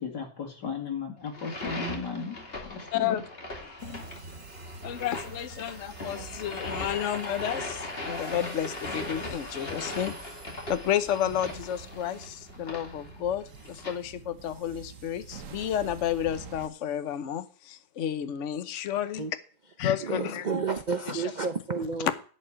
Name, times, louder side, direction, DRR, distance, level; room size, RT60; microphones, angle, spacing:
voice 1, 0.0-3.2 3.8-4.0, left 5 dB, 80° left, 2.8 m, -36 dB
sound 1, 1.3-13.9, left 2 dB, 35° left, 2.6 m, -39 dB
sound 2, 3.8-16.7, right 5 dB, 50° right, 1.4 m, -47 dB
voice 2, 4.8-10.1 10.7-19.3 19.8-20.5 21.1-21.2 22.0-22.1, left 10 dB, 50° left, 1.1 m, -31 dB
voice 3, 20.0-22.1, right 5 dB, 80° right, 0.4 m, -30 dB
11.0 x 5.5 x 8.7 m
omnidirectional pair, 1.8 m